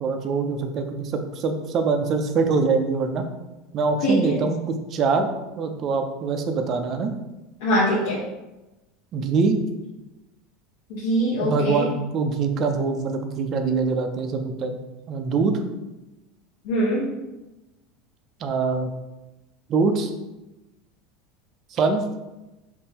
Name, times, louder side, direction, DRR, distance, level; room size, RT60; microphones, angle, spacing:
voice 1, 0.0-3.2 3.7-5.3 5.6-7.1 9.1-9.6 11.4-14.8 15.1-15.6 18.4-18.9 19.7-20.1 21.7-22.0, right 4 dB, 30° right, 5 dB, 0.3 m, -24 dB
voice 2, 4.0-4.4 7.6-8.2 10.9-11.9 16.6-17.1, equal, 65° left, -5 dB, 0.7 m, -22 dB
3.5 x 2.6 x 2.8 m, 1.0 s
supercardioid pair, 175°, 0 cm